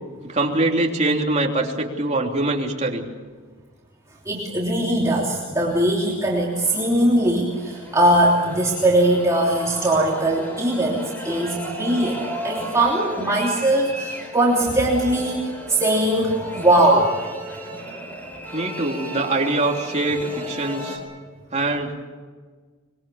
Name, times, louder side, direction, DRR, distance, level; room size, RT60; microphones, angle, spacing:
voice 1, 0.2-3.1 18.5-21.0 21.5-21.9, right 2 dB, 35° right, 1 dB, 3.3 m, -23 dB
voice 2, 4.2-17.1, right 1 dB, 15° right, -4 dB, 3.2 m, -20 dB
sound 1, 5.6-21.0, right 1 dB, 10° left, 4.7 m, -35 dB
25.0 x 23.5 x 7.2 m, 1.5 s
head